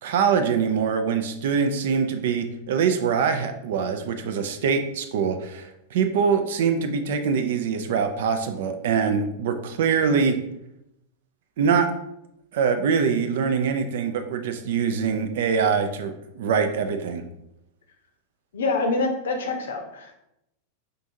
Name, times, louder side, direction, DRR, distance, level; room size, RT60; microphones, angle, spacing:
voice 1, 0.0-10.4 11.6-11.9 12.5-17.2, right 6 dB, 55° right, 8 dB, 0.4 m, -24 dB
voice 2, 18.5-20.1, left 3 dB, 60° left, 3 dB, 0.7 m, -26 dB
5.5 x 2.5 x 2.6 m, 0.84 s
figure-of-eight pair, 90°, 0 cm